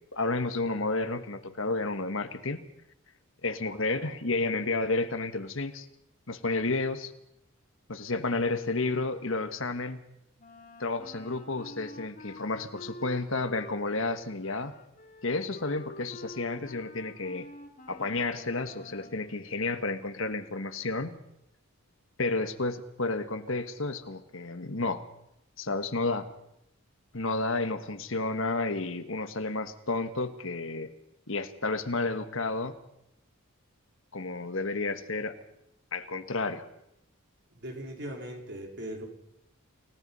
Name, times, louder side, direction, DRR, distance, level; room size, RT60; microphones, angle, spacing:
voice 1, 0.1-2.6 3.4-5.9 6.3-7.1 7.9-10.0 10.8-14.7 15.2-17.5 17.9-21.2 22.2-25.0 25.6-26.3 27.1-30.9 31.3-32.8 34.1-35.4 35.9-36.7, left 3 dB, 60° left, 9 dB, 1.5 m, -31 dB
Wind instrument woodwind instrument, 10.4-19.3, left 1 dB, 40° left, 2.8 m, -47 dB
voice 2, 37.5-39.1, right 1 dB, 50° right, 2 dB, 4.5 m, -39 dB
29.0 x 18.0 x 5.6 m, 0.81 s
head